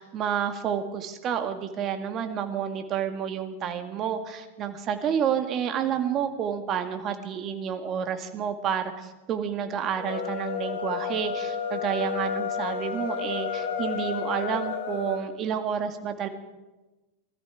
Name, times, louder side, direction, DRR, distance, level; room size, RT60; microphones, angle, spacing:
voice 1, 0.0-16.3, right 8 dB, 40° right, 7 dB, 1.7 m, -30 dB
sound 1, 9.9-15.2, left 6 dB, 70° left, 2.5 m, -31 dB
20.5 x 13.5 x 4.9 m, 1.1 s
hypercardioid pair, 100°, 0 cm